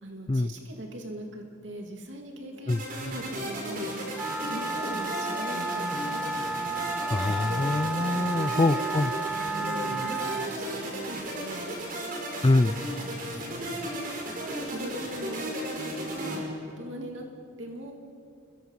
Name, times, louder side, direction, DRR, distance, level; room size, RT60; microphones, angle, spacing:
voice 1, 0.0-3.9 4.5-6.2 8.1-9.1 9.5-11.6 13.3-16.4 16.8-17.3 17.6-17.9, right 1 dB, 70° right, 1 dB, 2.8 m, -40 dB
sound 1, 2.7-16.4, right 1 dB, 50° right, 5.8 m, -35 dB
Wind instrument woodwind instrument, 4.1-10.5, right 3 dB, 5° right, 1.1 m, -32 dB
voice 2, 7.1-9.1 12.4-12.8, left 2 dB, 25° left, 17 dB, 0.5 m, -24 dB
29.5 x 22.5 x 5.8 m, 2.5 s
head